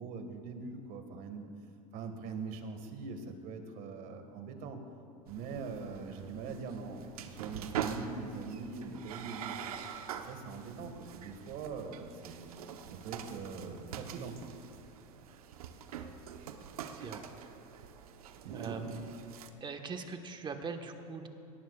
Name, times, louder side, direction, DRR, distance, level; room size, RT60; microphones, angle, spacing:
voice 1, 0.0-1.5 1.9-4.8 5.3-9.6 10.1-12.5 12.9-14.4 18.4-18.8, right 4 dB, 55° right, 6 dB, 1.7 m, -42 dB
sound 1, 5.3-19.5, right 8 dB, 85° right, 1.0 m, -44 dB
voice 2, 16.8-17.2 18.5-19.1 19.6-21.3, right 4 dB, 25° right, 5 dB, 1.3 m, -41 dB
21.5 x 18.0 x 2.4 m, 2.7 s
hypercardioid pair, 100°, 18 cm